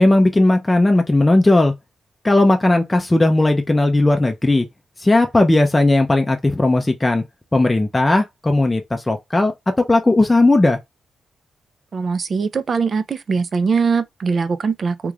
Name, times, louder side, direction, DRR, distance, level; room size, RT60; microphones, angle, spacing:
voice 1, 0.0-1.7 2.2-4.7 5.0-7.2 7.5-9.5 9.9-10.8, left 2 dB, 15° left, 0.5 m, -16 dB
voice 2, 11.9-15.1, right 5 dB, 50° right, 0.4 m, -21 dB
3.7 x 3.0 x 2.4 m
cardioid pair, 80°, 0 cm